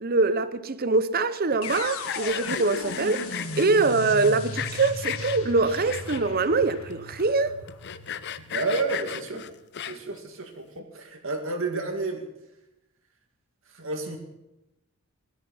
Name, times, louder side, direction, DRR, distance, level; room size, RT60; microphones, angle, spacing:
voice 1, 0.0-7.6, right 3 dB, 40° right, 0.8 m, -24 dB
Sawing, 1.5-3.7 4.2-5.4 5.9-6.5 6.9-7.0 7.2-7.3 7.7-10.2, left 9 dB, 50° left, 0.6 m, -35 dB
sound 1, 1.6-9.6, left 3 dB, 70° left, 1.6 m, -37 dB
voice 2, 8.5-9.4 9.8-12.3 13.7-14.2, right 3 dB, 60° right, 2.4 m, -30 dB
17.0 x 14.0 x 5.6 m
head